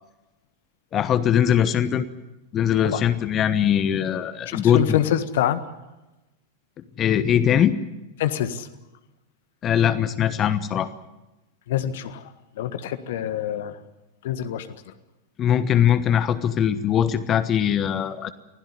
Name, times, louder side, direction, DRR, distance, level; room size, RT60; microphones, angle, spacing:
voice 1, 0.9-2.1 2.5-5.0 7.0-7.8 9.6-10.9 15.4-18.3, left 9 dB, 30° left, 13 dB, 1.1 m, -21 dB
voice 2, 4.5-5.6 8.2-8.7 11.7-12.3 12.6-13.8 14.2-14.9, left 11 dB, 55° left, 12 dB, 1.5 m, -26 dB
24.5 x 16.0 x 9.7 m, 1.0 s
figure-of-eight pair, 90°, 0 cm